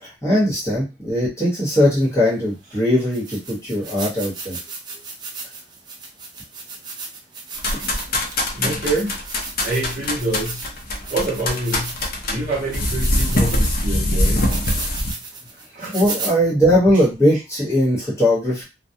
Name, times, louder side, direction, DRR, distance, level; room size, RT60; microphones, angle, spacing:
voice 1, 0.0-4.6 7.7-7.9 8.6-8.7 15.9-18.6, equal, 15° left, 1.0 m, -19 dB
sound 1, 2.0-2.1 2.7-2.8 3.1-12.3 12.7-16.3, right 4 dB, 20° right, 0.4 m, -35 dB
sound 2, 7.6-15.1, left 1 dB, 50° left, 0.6 m, -23 dB
voice 2, 8.5-9.2 9.6-10.7 11.1-14.6 15.7-16.0, right 2 dB, 40° right, 0.8 m, -26 dB
2.3 x 2.1 x 2.7 m
head